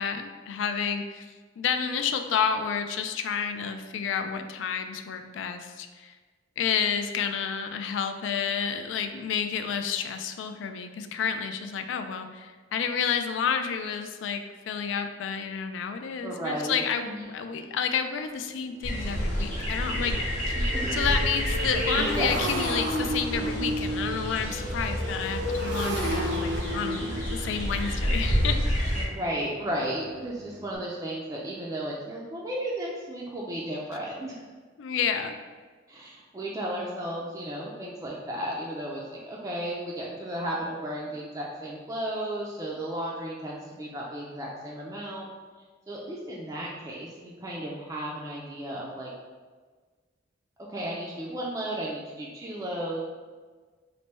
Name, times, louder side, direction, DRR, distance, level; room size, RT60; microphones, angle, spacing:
voice 1, 0.0-6.2 6.6-20.2 20.5-29.1 34.8-35.4, left 7 dB, 85° left, 7 dB, 0.3 m, -30 dB
voice 2, 16.2-17.7 20.6-21.0 21.5-21.7 22.1-22.4 29.0-34.4 35.9-45.3 45.9-49.1 50.7-53.0, right 1 dB, 15° right, -4 dB, 0.3 m, -34 dB
Motorcycle, 18.1-18.2 18.7-18.9 19.2-30.8, right 1 dB, 70° right, 0.6 m, -34 dB
sound 1, 18.8-29.0, equal, 40° left, 1.0 m, -29 dB
3.2 x 2.1 x 4.1 m, 1.4 s
head